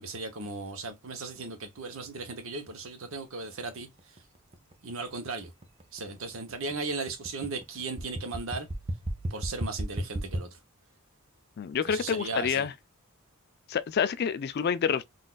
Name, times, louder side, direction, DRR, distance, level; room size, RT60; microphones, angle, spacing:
voice 1, 0.0-4.2 4.8-5.5 5.9-8.7 9.3-10.6 11.8-12.7, right 3 dB, 65° right, 0.8 m, -37 dB
sound 1, 3.4-10.4, right 1 dB, 30° right, 0.6 m, -35 dB
voice 2, 11.6-12.7 13.7-15.0, left 7 dB, 45° left, 0.3 m, -28 dB
4.0 x 2.5 x 2.3 m
head